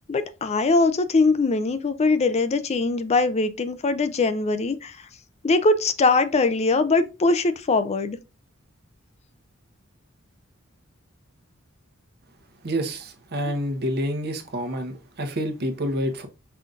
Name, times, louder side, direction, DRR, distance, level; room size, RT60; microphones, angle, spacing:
voice 1, 0.1-5.0 5.4-8.2, left 3 dB, 30° left, 0.4 m, -21 dB
voice 2, 12.6-16.3, equal, 50° right, 0.9 m, -28 dB
5.6 x 3.8 x 2.4 m
head